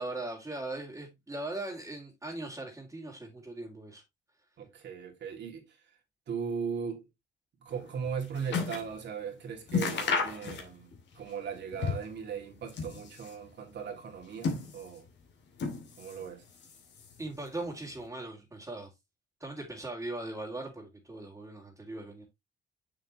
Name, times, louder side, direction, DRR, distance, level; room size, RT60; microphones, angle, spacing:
voice 1, 0.0-4.0 17.2-18.9 19.4-22.2, right 2 dB, 15° right, 2.4 m, -39 dB
voice 2, 4.6-5.8 6.3-7.0 7.6-15.0 16.0-16.4, right 6 dB, 60° right, 2.5 m, -38 dB
sound 1, 7.8-8.9 9.3-9.4 9.7-11.0 11.3-12.2 12.6-13.4 14.1-15.1 15.5-16.3 16.5-17.3 18.0-18.1, left 5 dB, 65° left, 2.4 m, -34 dB
6.8 x 6.6 x 3.0 m
cardioid pair, 90°, 20 cm